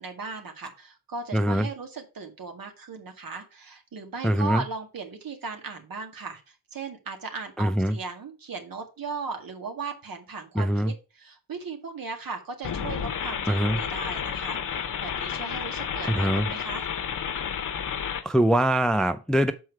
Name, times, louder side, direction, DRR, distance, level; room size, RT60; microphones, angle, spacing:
voice 1, 0.0-16.9, right 4 dB, 60° right, 2.0 m, -37 dB
voice 2, 1.3-1.7 4.2-4.6 7.6-8.0 10.6-10.9 13.5-13.8 16.1-16.5 18.2-19.5, right 1 dB, ahead, 0.4 m, -23 dB
sound 1, 12.6-18.2, left 8 dB, 50° left, 0.9 m, -31 dB
6.4 x 4.6 x 4.6 m
cardioid pair, 85°, 39 cm